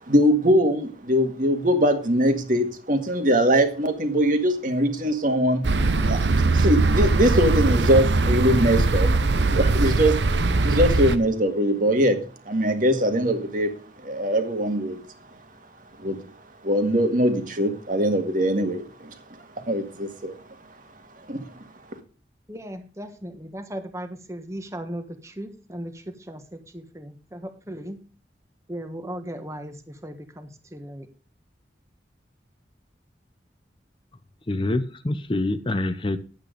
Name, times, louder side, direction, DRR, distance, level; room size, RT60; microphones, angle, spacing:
voice 1, 0.1-5.7 6.0-6.2 6.5-9.1 9.5-10.2 10.6-12.2 12.5-13.7 14.0-15.0 16.0-16.2 16.6-19.1 19.7-20.3 21.3-21.4, equal, 50° right, 6 dB, 1.9 m, -22 dB
sound 1, 5.6-11.2, right 3 dB, 90° right, 0.9 m, -21 dB
voice 2, 22.5-28.0 28.7-31.1, equal, 15° right, 7 dB, 1.3 m, -37 dB
voice 3, 34.5-36.2, left 2 dB, 30° left, 11 dB, 0.7 m, -25 dB
10.5 x 8.5 x 5.1 m, 0.38 s
head